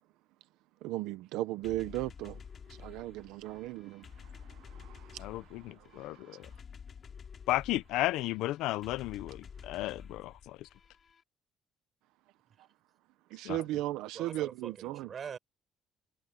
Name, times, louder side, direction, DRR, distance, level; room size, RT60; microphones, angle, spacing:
voice 1, 0.8-2.4 2.7-6.5 13.3-15.1, right 16 dB, 90° right, 0.9 m, -37 dB
sound 1, 1.6-11.2, left 6 dB, 45° left, 3.1 m, -51 dB
voice 2, 5.2-6.5 7.5-10.7 13.4-13.6, left 17 dB, 85° left, 0.7 m, -34 dB
voice 3, 14.1-15.4, right 7 dB, 50° right, 4.9 m, -43 dB
cardioid pair, 85°, 0 cm